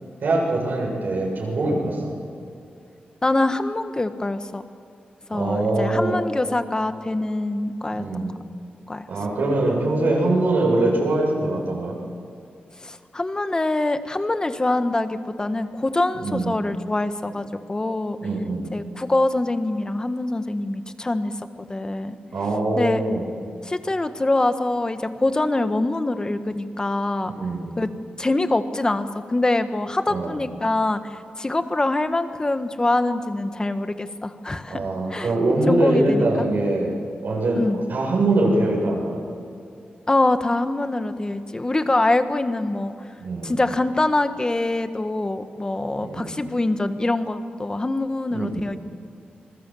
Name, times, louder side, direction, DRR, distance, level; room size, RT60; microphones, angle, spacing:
voice 1, 0.2-2.2 5.3-6.2 7.9-8.4 9.1-12.0 16.1-16.5 18.2-18.7 22.3-23.3 27.3-27.7 30.1-30.4 34.7-37.0 37.2-39.2 43.2-43.5 46.0-46.3 48.3-48.7, right 2 dB, 75° right, -2 dB, 7.0 m, -23 dB
voice 2, 3.2-4.7 5.3-8.3 8.9-9.1 12.8-18.2 18.7-21.4 21.7-22.2 22.8-23.0 23.6-27.3 27.8-27.9 28.2-35.3 35.7-36.5 37.6-37.8 40.1-42.9 43.4-48.8, left 2 dB, 25° left, 9 dB, 1.4 m, -24 dB
27.0 x 21.0 x 7.8 m, 2.4 s
wide cardioid pair, 95°, 3 cm